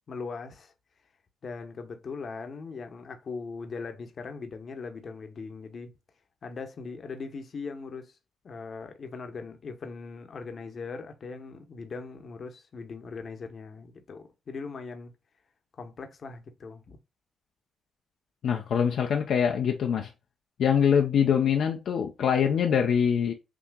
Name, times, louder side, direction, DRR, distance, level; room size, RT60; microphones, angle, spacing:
voice 1, 0.1-0.7 1.4-5.9 6.4-8.2 8.4-15.1 15.7-17.0, left 4 dB, 50° left, 0.9 m, -40 dB
voice 2, 18.4-20.1 20.6-23.3, left 7 dB, 70° left, 0.6 m, -24 dB
6.0 x 2.8 x 2.2 m
cardioid pair, 105°, 0 cm